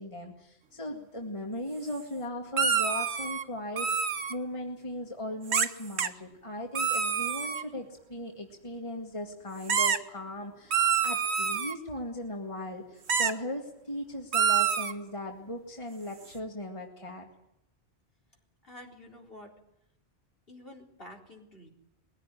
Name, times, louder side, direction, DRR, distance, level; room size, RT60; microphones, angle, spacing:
voice 1, 0.0-17.3, left 1 dB, 30° left, 1 dB, 2.2 m, -38 dB
sound 1, 2.6-3.4 3.8-4.3 5.5-5.7 6.0-6.1 6.8-7.6 9.7-10.0 10.7-11.7 13.1-13.3 14.3-14.9, right 7 dB, 85° right, 1.4 m, -27 dB
voice 2, 18.6-19.5 20.5-21.7, left 1 dB, 60° left, 0 dB, 4.5 m, -49 dB
21.5 x 16.0 x 9.9 m, 0.83 s
omnidirectional pair, 1.1 m